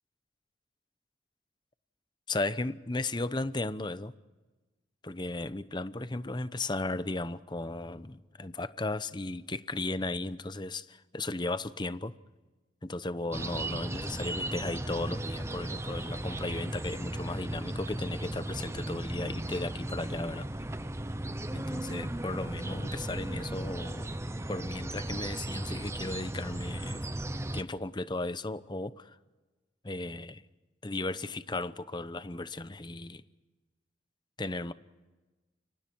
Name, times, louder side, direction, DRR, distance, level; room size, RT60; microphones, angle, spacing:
voice 1, 2.3-4.1 5.0-12.1 12.8-20.5 21.5-24.1 24.5-27.0 27.5-29.2 29.8-30.4 30.8-33.2 34.4-34.7, left 2 dB, 25° left, 0.8 m, -35 dB
sound 1, 13.3-27.6, right 1 dB, 15° right, 0.8 m, -36 dB
29.5 x 24.0 x 4.6 m
head